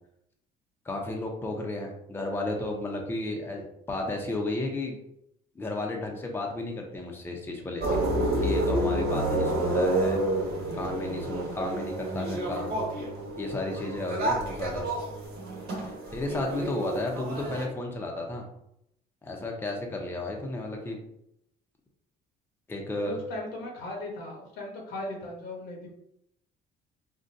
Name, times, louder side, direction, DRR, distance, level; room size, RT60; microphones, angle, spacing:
voice 1, 0.8-5.0 5.6-10.2 10.7-12.7 13.4-14.9 15.8-18.5 19.2-21.0 22.7-23.2, left 2 dB, 15° left, 1 dB, 0.5 m, -33 dB
sound 1, 7.8-17.6, right 1 dB, 70° right, 1.1 m, -29 dB
voice 2, 23.0-25.9, left 2 dB, 85° left, 0 dB, 0.9 m, -38 dB
3.7 x 2.2 x 2.5 m, 0.77 s
cardioid pair, 110°, 17 cm